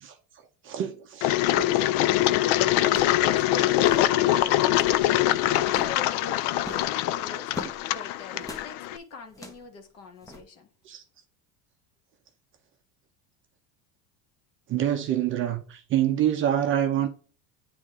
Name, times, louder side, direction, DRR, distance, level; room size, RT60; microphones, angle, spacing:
voice 1, 0.6-1.8 10.9-11.0 14.7-17.1, right 11 dB, 30° right, 0.7 m, -26 dB
Engine, 1.2-9.0, left 14 dB, 60° left, 0.5 m, -23 dB
sound 1, 1.9-2.1 2.8-3.3 3.5-3.6 3.8-4.1 4.6-5.1 5.7-6.0 6.6-7.8 8.4-8.7 9.3-9.7 10.2-10.4, left 1 dB, 10° left, 0.7 m, -42 dB
voice 2, 3.2-10.7, left 3 dB, 40° left, 1.5 m, -43 dB
9.5 x 3.2 x 3.7 m
cardioid pair, 170°, 39 cm